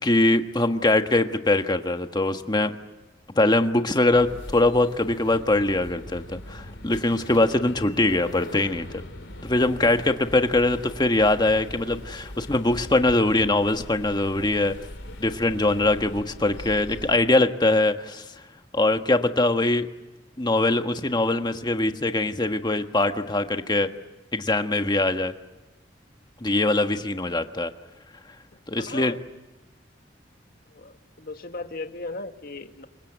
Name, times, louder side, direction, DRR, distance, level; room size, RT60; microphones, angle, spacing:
voice 1, 0.0-2.7 3.4-9.0 9.4-14.7 15.2-18.2 18.7-19.9 20.4-23.9 24.3-25.3 26.4-27.7 28.7-29.1, left 2 dB, 25° left, 7 dB, 1.4 m, -22 dB
sound 1, 4.1-17.2, left 1 dB, 85° left, 3.9 m, -41 dB
voice 2, 28.8-29.2 30.7-32.9, left 2 dB, 50° left, 7 dB, 1.8 m, -37 dB
28.5 x 24.5 x 8.1 m, 1.1 s
head